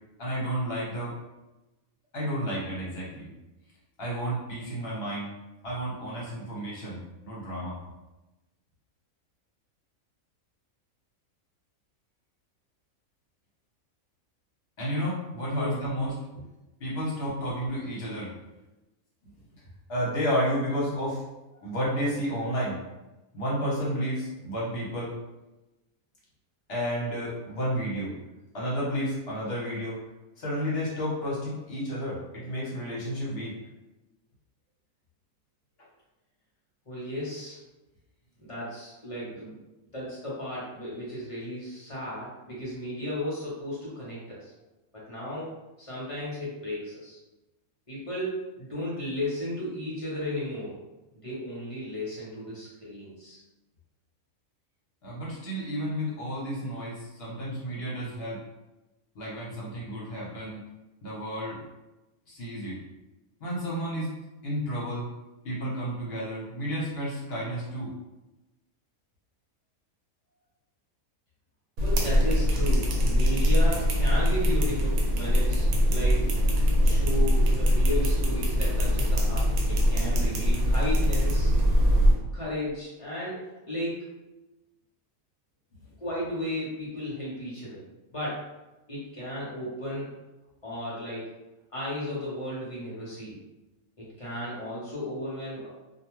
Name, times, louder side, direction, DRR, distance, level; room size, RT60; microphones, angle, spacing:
voice 1, 0.2-1.1 2.1-3.3 4.0-5.3 5.6-7.8 14.8-16.1 16.8-18.3 19.2-19.3 19.9-21.2 21.6-22.8 23.3-25.1 26.7-28.1 28.5-30.0 30.4-33.5 55.0-58.4 59.1-60.6 61.0-61.6 62.3-62.8 63.4-64.1 64.4-65.1 65.4-67.9, equal, 55° left, -6 dB, 0.9 m, -31 dB
voice 2, 36.9-37.6 38.4-39.6 39.9-44.5 44.9-47.2 47.9-50.8 51.1-53.4 71.8-76.3 76.8-81.5 82.3-84.1 86.0-87.8 88.1-88.5 88.9-90.1 90.6-91.3 91.7-93.4 94.0-95.7, left 1 dB, 30° left, -7 dB, 0.6 m, -34 dB
sound 1, 71.8-82.1, equal, 85° right, 1.0 m, -22 dB
2.5 x 2.2 x 3.0 m, 1.0 s
omnidirectional pair, 1.5 m